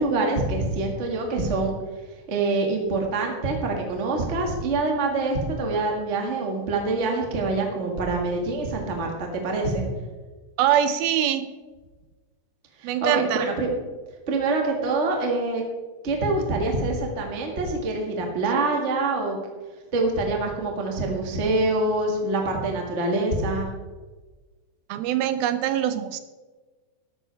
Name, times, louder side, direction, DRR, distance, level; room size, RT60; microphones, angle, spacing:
voice 1, 0.0-1.7 2.3-9.8 12.8-13.7 14.3-15.6 16.0-19.4 19.9-23.7, right 3 dB, 35° right, 1 dB, 1.0 m, -25 dB
voice 2, 10.6-11.5 12.8-13.4 24.9-26.2, right 10 dB, 80° right, 11 dB, 2.4 m, -23 dB
13.5 x 12.0 x 3.4 m, 1.3 s
omnidirectional pair, 4.4 m